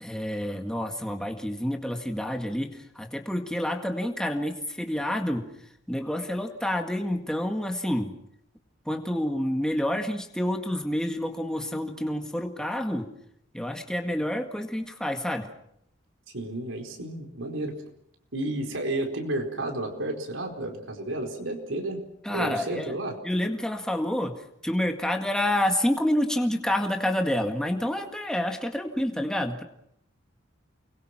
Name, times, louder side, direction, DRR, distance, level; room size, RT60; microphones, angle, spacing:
voice 1, 0.0-5.5 5.9-8.1 8.9-13.1 13.5-15.5 22.2-23.0 23.2-29.6, left 1 dB, 5° left, 3 dB, 1.9 m, -28 dB
voice 2, 16.3-17.7 18.3-23.2, right 1 dB, 80° right, 3 dB, 4.5 m, -32 dB
29.5 x 22.0 x 6.0 m, 0.73 s
head